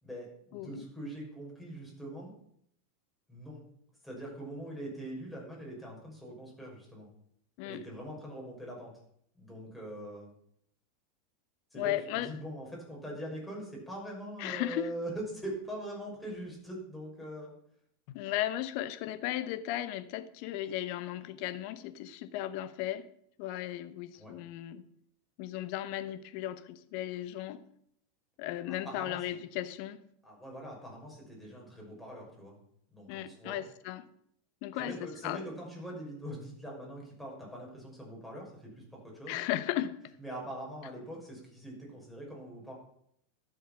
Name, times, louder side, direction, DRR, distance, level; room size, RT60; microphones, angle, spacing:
voice 1, 0.0-2.4 3.3-3.6 4.0-7.1 7.6-8.9 9.3-10.3 11.7-17.5 24.1-24.3 28.7-29.2 30.2-32.6 32.9-33.6 34.8-39.4 40.2-42.7, right 1 dB, ahead, 6.1 m, -43 dB
voice 2, 0.5-0.8 7.6-7.8 11.7-12.3 14.4-14.9 18.1-23.1 23.4-24.8 25.4-27.6 28.4-30.0 33.1-34.1 34.6-35.4 39.3-40.0, left 13 dB, 50° left, 0.9 m, -36 dB
12.5 x 7.8 x 5.9 m
figure-of-eight pair, 85°, 0 cm